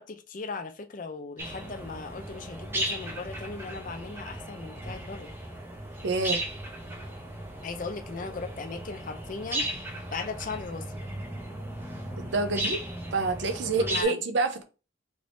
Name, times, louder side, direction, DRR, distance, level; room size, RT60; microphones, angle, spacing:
voice 1, 0.0-5.3 7.6-9.8 10.1-11.0 13.8-14.2, left 4 dB, 40° left, 0.4 m, -38 dB
sound 1, 1.4-14.0, right 1 dB, 10° right, 0.6 m, -36 dB
voice 2, 6.0-6.4 12.2-12.8 13.1-14.6, right 3 dB, 60° right, 0.5 m, -27 dB
3.3 x 3.0 x 2.6 m
head